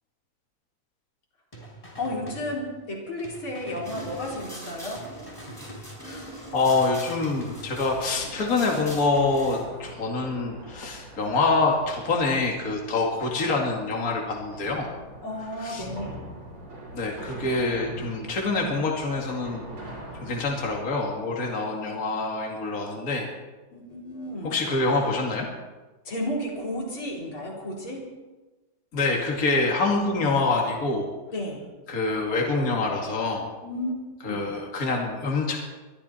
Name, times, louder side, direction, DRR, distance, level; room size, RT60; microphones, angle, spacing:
sound 1, 1.5-3.0 3.2-4.7 4.9-6.4 6.7-8.0, right 1 dB, 15° left, 3.7 m, -45 dB
voice 1, 2.0-5.0 15.2-16.2 23.7-24.5 26.0-28.0 31.3-31.6 33.6-33.9 34.3-34.4, left 1 dB, 90° left, -3 dB, 4.9 m, -32 dB
sound 2, 3.8-9.6, equal, 10° right, 6.8 m, -41 dB
voice 2, 6.5-14.9 15.6-15.8 16.9-19.9 20.2-23.3 24.4-25.5 28.9-31.1 31.9-33.5 34.2-35.6, left 3 dB, 45° left, 0 dB, 2.6 m, -26 dB
sound 3, 7.6-21.1, right 1 dB, 85° right, 5.3 m, -43 dB
23.0 x 13.0 x 4.4 m, 1.2 s
omnidirectional pair, 2.2 m